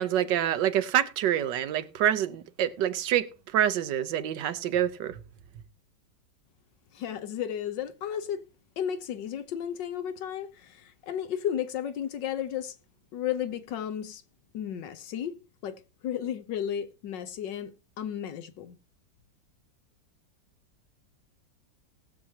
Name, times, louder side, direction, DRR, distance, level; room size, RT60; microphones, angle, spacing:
voice 1, 0.0-3.3 3.5-5.2, right 10 dB, 75° right, 1.4 m, -26 dB
voice 2, 6.9-8.4 8.8-12.8 13.1-14.2 14.5-15.4 15.6-15.7 16.0-18.8, left 9 dB, 80° left, 1.6 m, -33 dB
19.5 x 7.1 x 2.8 m
omnidirectional pair, 1.9 m